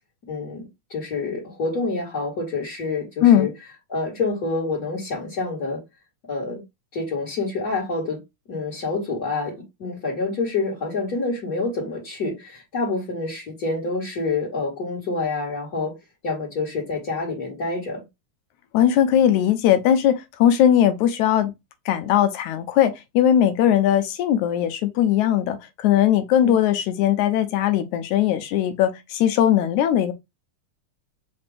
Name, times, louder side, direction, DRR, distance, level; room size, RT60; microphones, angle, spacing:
voice 1, 0.3-0.6 0.9-3.5 3.9-5.8 6.3-6.6 6.9-8.2 8.5-9.5 9.8-15.9 16.2-18.0 26.4-26.5, left 3 dB, 35° left, 1.9 m, -27 dB
voice 2, 18.7-21.5 21.9-30.1, left 10 dB, 80° left, 2.1 m, -19 dB
5.1 x 2.8 x 3.5 m
omnidirectional pair, 3.5 m